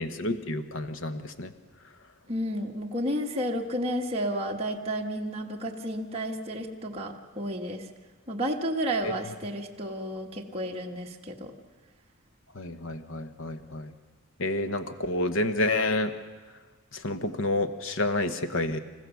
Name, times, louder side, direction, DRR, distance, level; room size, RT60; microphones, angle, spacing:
voice 1, 0.0-1.5 12.6-13.9 14.4-16.1 17.0-18.8, left 2 dB, 60° left, 9 dB, 1.1 m, -29 dB
voice 2, 2.3-7.8 8.3-11.5, equal, 25° right, -1 dB, 1.3 m, -31 dB
27.0 x 15.0 x 7.0 m, 1.3 s
head